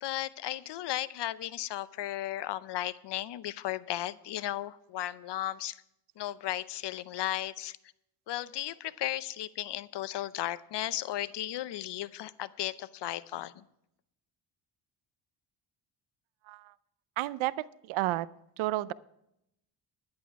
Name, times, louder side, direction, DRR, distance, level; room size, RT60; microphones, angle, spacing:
voice 1, 0.0-5.8 6.2-7.8 8.3-13.6, left 13 dB, 60° left, 17 dB, 0.7 m, -35 dB
voice 2, 17.2-17.5 17.8-18.3 18.6-18.9, right 17 dB, 90° right, 18 dB, 0.6 m, -31 dB
11.0 x 10.5 x 4.7 m, 0.79 s
cardioid pair, 90°, 47 cm